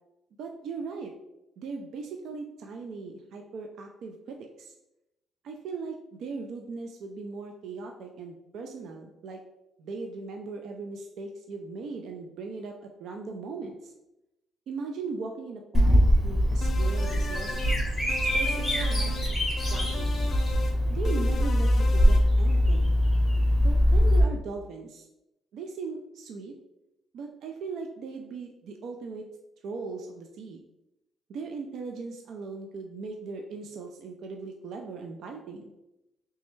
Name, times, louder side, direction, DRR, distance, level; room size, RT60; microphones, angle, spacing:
voice 1, 0.4-1.1 1.6-4.7 5.4-9.4 9.8-13.9 14.7-17.6 18.3-19.2 19.6-20.3 20.9-23.0 23.6-25.0 25.5-26.5 27.1-29.2 29.6-30.6 31.3-35.7, right 4 dB, 60° right, 3 dB, 0.3 m, -38 dB
Bird vocalization bird call bird song, 15.7-24.2, equal, ahead, 0.8 m, -23 dB
sound 1, 16.6-17.8 18.1-19.3 19.6-20.8 21.0-22.2, left 4 dB, 40° left, 0.3 m, -39 dB
3.3 x 3.1 x 3.1 m, 0.91 s
cardioid pair, 175°, 0 cm